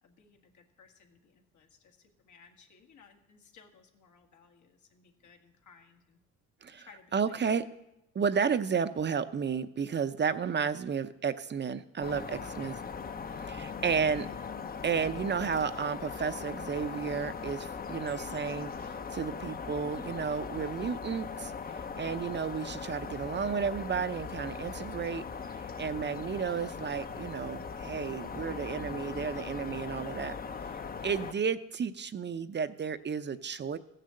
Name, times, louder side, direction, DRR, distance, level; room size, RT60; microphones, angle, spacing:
voice 1, 0.0-6.2 6.8-7.7 12.4-12.7 31.2-31.4, left 5 dB, 75° left, 4 dB, 1.9 m, -59 dB
voice 2, 7.1-7.7 8.1-12.7 13.3-14.3 14.8-21.5 22.0-25.2 25.8-30.3 31.0-33.8, right 6 dB, 35° right, 11 dB, 0.7 m, -32 dB
sound 1, 12.0-31.3, left 5 dB, 30° left, 0.7 m, -40 dB
15.0 x 6.7 x 7.7 m, 0.87 s
cardioid pair, 90°, 30 cm